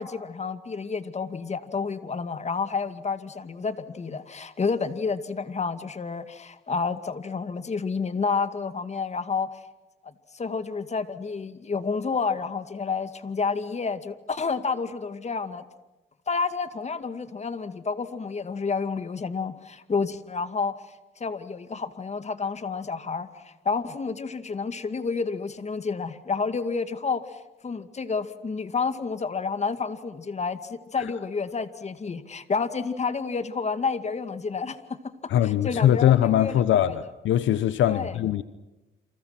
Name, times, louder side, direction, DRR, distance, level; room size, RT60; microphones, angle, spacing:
voice 1, 0.0-9.5 10.0-15.6 16.3-20.7 21.2-35.0 35.4-37.0 37.8-38.2, left 5 dB, 35° left, 2.3 m, -30 dB
voice 2, 35.3-38.4, left 11 dB, 75° left, 1.0 m, -21 dB
29.5 x 27.5 x 6.0 m
cardioid pair, 90°, 20 cm